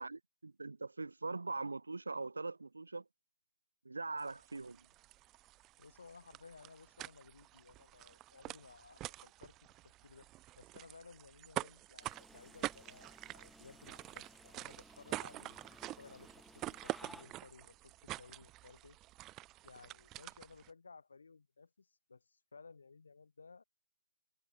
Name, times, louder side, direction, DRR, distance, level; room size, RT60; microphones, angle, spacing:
voice 1, 0.0-3.0 3.8-4.9, right 3 dB, 70° right, 1.0 m, -42 dB
sound 1, 4.2-20.7, right 17 dB, 15° right, 0.4 m, -47 dB
voice 2, 5.8-10.3 10.6-19.0 19.6-23.6, left 4 dB, 60° left, 4.0 m, -58 dB
sound 2, 12.0-17.2, left 1 dB, ahead, 1.4 m, -60 dB
figure-of-eight pair, 140°, 0 cm